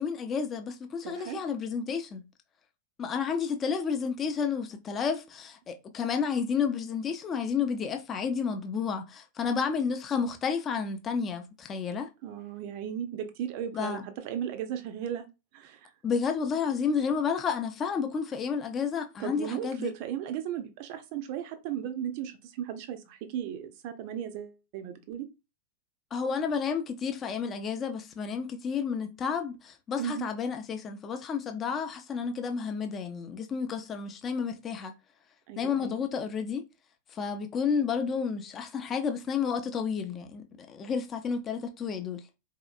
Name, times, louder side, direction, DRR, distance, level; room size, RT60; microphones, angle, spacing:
voice 1, 0.0-2.2 3.0-12.1 13.7-14.0 16.0-19.9 26.1-34.9 35.6-36.6 37.1-42.2, left 6 dB, 25° left, 0.6 m, -31 dB
voice 2, 1.0-1.4 12.2-15.3 15.5-15.9 19.2-25.3 30.0-30.3 35.5-36.0, right 9 dB, 45° right, 0.6 m, -36 dB
4.1 x 2.8 x 2.4 m
figure-of-eight pair, 90°, 0 cm